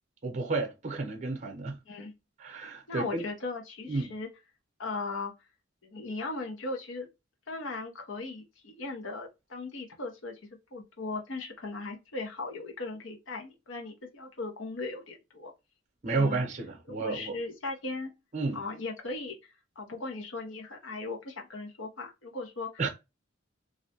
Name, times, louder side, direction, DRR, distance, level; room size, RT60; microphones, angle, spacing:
voice 1, 0.2-1.8 2.4-3.2 3.9-4.1 16.0-17.4 18.3-18.6 22.8-22.9, right 3 dB, 40° right, 0.7 m, -31 dB
voice 2, 2.9-4.3 4.8-5.3 5.8-7.1 7.5-10.4 10.7-15.5 16.1-16.4 16.9-18.1 18.5-19.4 19.8-22.7, left 3 dB, 75° left, 0.8 m, -38 dB
2.5 x 2.1 x 2.7 m
head